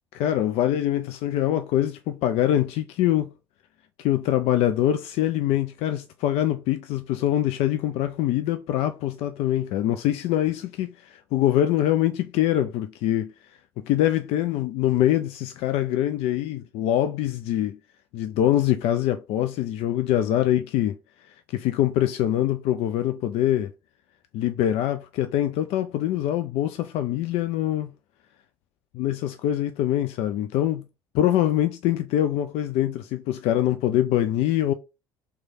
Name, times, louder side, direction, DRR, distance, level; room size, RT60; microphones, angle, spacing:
voice 1, 0.1-3.3 4.0-13.6 13.9-17.8 18.1-21.0 21.3-23.7 24.3-27.9 28.9-30.8 31.1-34.7, left 12 dB, 55° left, 0.4 m, -24 dB
3.5 x 3.2 x 4.0 m
figure-of-eight pair, 55°, 12 cm